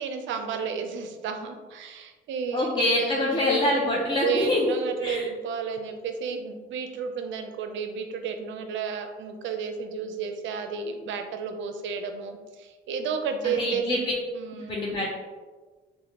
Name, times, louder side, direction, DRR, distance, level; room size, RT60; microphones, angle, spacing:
voice 1, 0.0-2.7 3.0-3.6 4.2-13.8 14.3-14.8, right 6 dB, 70° right, 6 dB, 0.4 m, -32 dB
voice 2, 2.5-4.6 5.0-5.3 13.4-14.0 14.7-15.1, left 1 dB, 25° left, -4 dB, 0.5 m, -25 dB
3.4 x 2.1 x 2.9 m, 1.3 s
cardioid pair, 90°, 20 cm